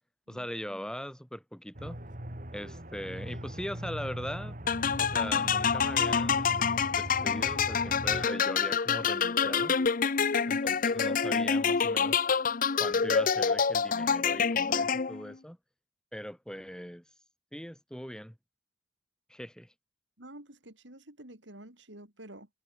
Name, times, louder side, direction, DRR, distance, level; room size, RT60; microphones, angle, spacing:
voice 1, 0.3-2.0 2.5-4.6 5.0-9.8 10.5-12.2 12.8-15.6 16.1-17.0 17.5-18.4 19.3-19.7, equal, 5° left, 4.5 m, -40 dB
Aircraft, 1.7-8.3, right 1 dB, 45° right, 4.1 m, -40 dB
sound 1, 4.7-15.3, left 6 dB, 45° left, 0.7 m, -27 dB
voice 2, 10.2-10.6 20.2-22.5, right 1 dB, 80° right, 5.9 m, -50 dB
head